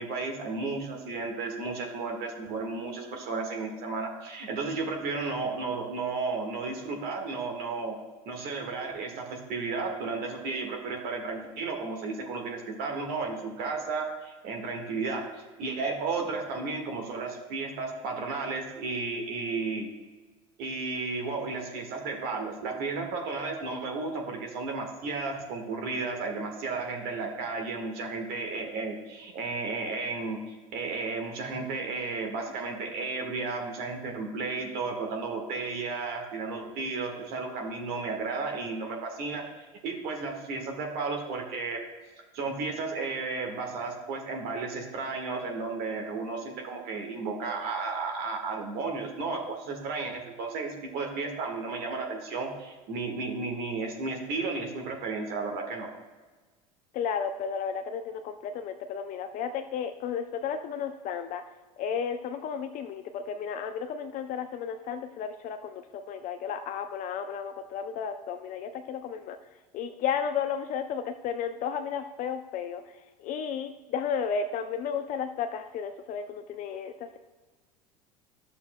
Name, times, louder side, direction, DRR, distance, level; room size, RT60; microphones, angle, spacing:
voice 1, 0.0-8.0 8.3-15.3 15.6-19.9 20.6-30.4 30.7-39.4 39.8-41.8 42.3-55.9, right 4 dB, 55° right, 2 dB, 1.6 m, -33 dB
voice 2, 56.9-61.4 61.8-69.4 69.7-72.8 73.2-77.2, left 7 dB, 45° left, 7 dB, 0.5 m, -33 dB
11.5 x 6.9 x 2.2 m, 1.3 s
hypercardioid pair, 80°, 18 cm